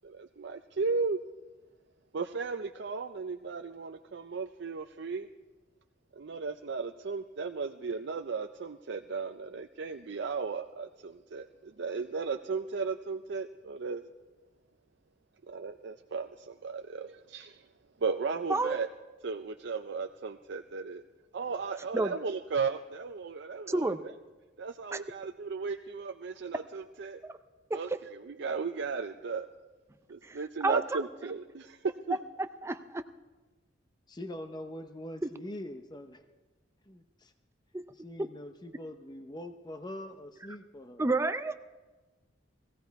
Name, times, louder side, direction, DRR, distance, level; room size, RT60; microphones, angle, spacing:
voice 1, 0.0-1.2 2.1-5.3 6.1-14.0 15.5-17.7 18.0-18.9 19.2-21.0 21.3-24.1 24.6-27.2 27.7-29.5 30.1-32.2, right 4 dB, 65° right, 5 dB, 0.5 m, -35 dB
voice 2, 23.7-24.0 24.9-25.0 27.2-27.3 27.7-27.8 30.2-30.4 30.6-30.8 32.6-33.0 37.7-37.8 41.0-41.5, right 2 dB, 15° right, 9 dB, 0.5 m, -29 dB
voice 3, 34.2-36.2 36.9-37.3 37.9-41.3, left 1 dB, 25° left, 7 dB, 0.7 m, -43 dB
19.5 x 15.0 x 4.7 m, 1.2 s
head